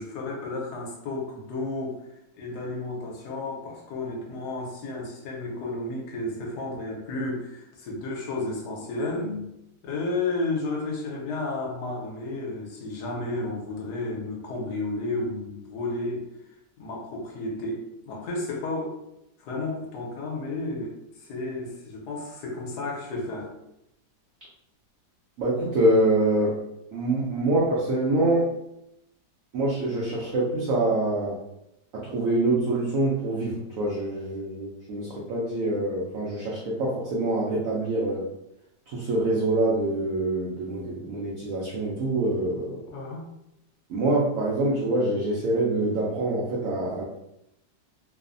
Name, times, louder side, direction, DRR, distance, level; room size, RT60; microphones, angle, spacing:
voice 1, 0.0-2.0 2.4-9.5 9.8-16.2 16.8-18.9 19.4-23.5 42.9-43.3, left 2 dB, 70° left, -1 dB, 1.1 m, -32 dB
voice 2, 25.4-26.6 26.9-28.5 29.5-31.4 31.9-38.3 38.9-42.8 43.9-47.0, right 2 dB, 90° right, -4 dB, 0.7 m, -25 dB
3.1 x 2.0 x 2.5 m, 0.84 s
omnidirectional pair, 2.0 m